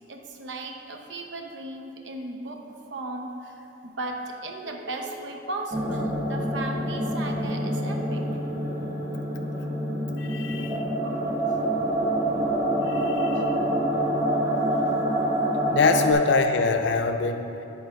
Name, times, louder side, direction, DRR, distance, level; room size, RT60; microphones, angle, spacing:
voice 1, 0.1-2.6 2.9-8.2 11.5-11.6 13.3-13.4 14.7-15.1, right 2 dB, 70° right, 3 dB, 0.7 m, -36 dB
sound 1, 5.7-16.1, right 1 dB, 20° right, 1.0 m, -26 dB
voice 2, 10.2-10.8 12.9-13.5 15.7-17.6, left 4 dB, 65° left, 6 dB, 0.5 m, -24 dB
8.4 x 4.1 x 5.2 m, 2.9 s
head